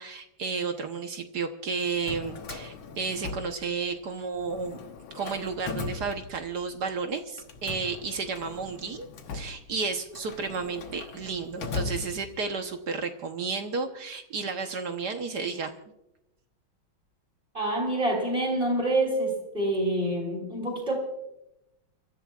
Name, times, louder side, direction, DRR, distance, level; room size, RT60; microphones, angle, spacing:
voice 1, 0.0-4.8 5.1-15.7, right 5 dB, 60° right, 5 dB, 1.5 m, -32 dB
Drawer open or close, 1.9-4.1 4.4-6.8 7.4-12.6, left 4 dB, 75° left, 2.1 m, -39 dB
voice 2, 17.5-21.0, right 1 dB, 25° right, -2 dB, 4.5 m, -27 dB
29.5 x 14.0 x 2.4 m, 0.90 s
omnidirectional pair, 2.2 m